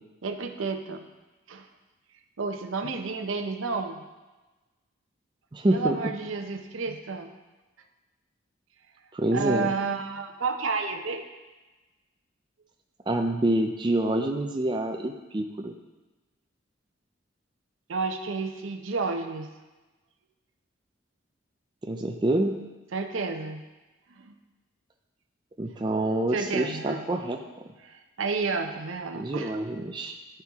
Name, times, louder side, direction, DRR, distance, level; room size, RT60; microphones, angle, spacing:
voice 1, 0.2-1.0 1.5-1.7 2.4-4.0 5.7-7.3 9.3-11.2 17.9-19.5 22.9-23.6 24.2-24.4 26.3-27.1 27.8-29.5, right 4 dB, 85° right, 6 dB, 0.6 m, -31 dB
voice 2, 5.5-6.0 9.1-9.7 13.1-15.7 21.8-22.5 25.6-27.4 29.1-30.2, right 1 dB, 25° right, 3 dB, 0.4 m, -27 dB
11.0 x 4.4 x 3.5 m, 1.2 s
head